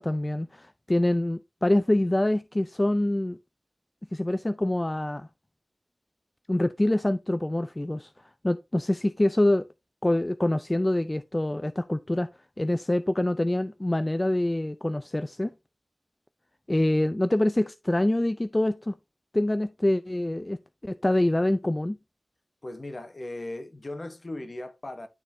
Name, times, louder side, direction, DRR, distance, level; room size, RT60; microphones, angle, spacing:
voice 1, 0.0-3.4 4.1-5.3 6.5-8.1 8.4-9.7 10.0-12.3 12.6-15.5 16.7-19.0 19.3-20.6 20.8-22.0, left 1 dB, 25° left, 0.4 m, -25 dB
voice 2, 22.6-25.1, left 1 dB, 50° left, 1.2 m, -37 dB
11.0 x 4.1 x 2.8 m
cardioid pair, 40°, 0 cm